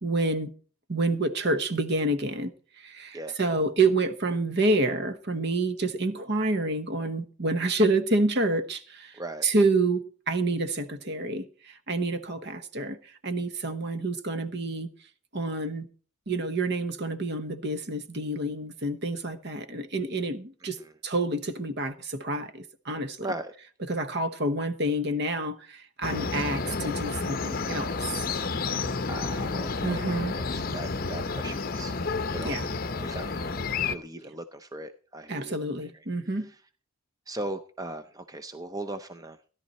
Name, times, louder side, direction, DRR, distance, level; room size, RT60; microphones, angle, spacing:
voice 1, 0.0-0.5 0.9-2.5 2.8-9.1 9.4-13.0 13.2-14.9 15.3-15.9 16.3-20.8 21.0-23.3 23.9-28.0 29.8-30.3 32.4-32.7 35.3-36.5, right 2 dB, 50° right, 1.1 m, -28 dB
voice 2, 9.1-9.5 20.6-20.9 23.2-23.5 29.0-32.0 32.3-33.6 33.9-35.9 36.4-36.6 37.3-39.4, right 2 dB, 15° right, 0.5 m, -39 dB
sound 1, 26.0-33.9, left 4 dB, 40° left, 0.7 m, -30 dB
16.5 x 11.0 x 4.2 m
head